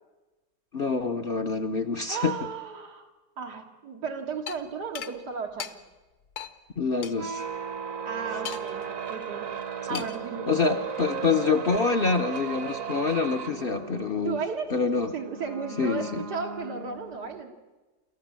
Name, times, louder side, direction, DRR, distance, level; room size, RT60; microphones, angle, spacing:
voice 1, 0.7-2.3 6.8-7.4 9.9-10.0 10.5-14.4 14.7-15.1 15.8-16.2, left 4 dB, 50° left, 8 dB, 0.7 m, -26 dB
voice 2, 2.1-3.1 3.4-5.8 8.0-9.5 9.9-10.8 14.2-14.7 15.1-17.6, right 5 dB, 85° right, 3 dB, 2.5 m, -35 dB
sound 1, 4.5-4.6 5.0-5.1 5.6-5.7 6.4-6.5 7.0-7.1 8.5-8.8 9.9-10.3, left 8 dB, 70° left, 1.4 m, -36 dB
sound 2, 7.1-17.4, right 7 dB, 55° right, 1.4 m, -36 dB
26.5 x 14.0 x 7.4 m, 1.2 s
omnidirectional pair, 1.7 m